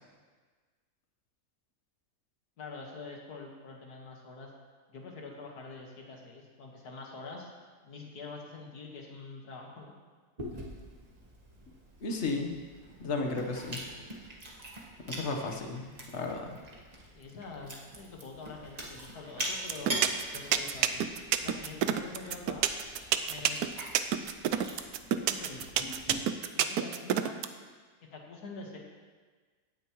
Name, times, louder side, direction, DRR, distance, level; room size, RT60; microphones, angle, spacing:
voice 1, 2.6-4.5 4.9-7.5 7.8-9.9 17.1-19.9 20.3-21.1 21.4-22.7 23.3-23.7 25.2-25.7 26.5-27.5 28.0-28.8, left 3 dB, 80° left, 0 dB, 2.1 m, -45 dB
Chewing mastication, 10.4-26.1, right 1 dB, 25° right, 1.5 m, -43 dB
voice 2, 12.0-12.5 13.0-13.8 15.1-16.6, left 3 dB, 50° left, 2 dB, 1.4 m, -34 dB
sound 1, 19.7-27.5, right 11 dB, 80° right, 1.1 m, -27 dB
17.0 x 9.2 x 3.1 m, 1.5 s
omnidirectional pair, 1.7 m